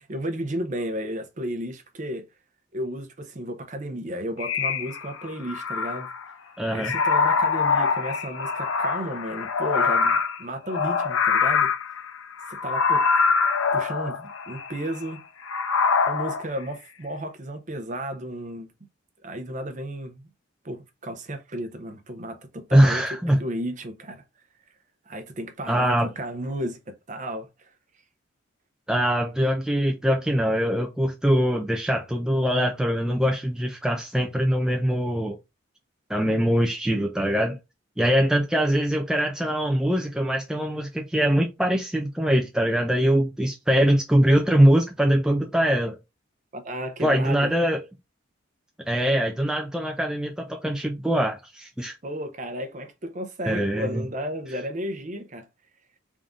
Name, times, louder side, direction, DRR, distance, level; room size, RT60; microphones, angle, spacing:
voice 1, 0.0-2.3 2.7-6.1 6.7-11.7 12.5-13.0 13.7-15.2 16.1-18.7 19.2-20.2 20.6-24.2 25.1-27.7 46.5-47.5 52.0-55.5, right 1 dB, 35° right, 0.6 m, -33 dB
sound 1, 4.4-6.3 6.8-15.1 15.5-16.4, left 5 dB, 80° left, 0.5 m, -24 dB
voice 2, 6.6-6.9 22.7-23.4 25.7-26.1 28.9-35.4 36.1-37.6 38.0-46.0 47.0-47.8 48.9-51.9 53.5-54.0, equal, 5° right, 0.3 m, -22 dB
3.6 x 2.6 x 3.5 m
head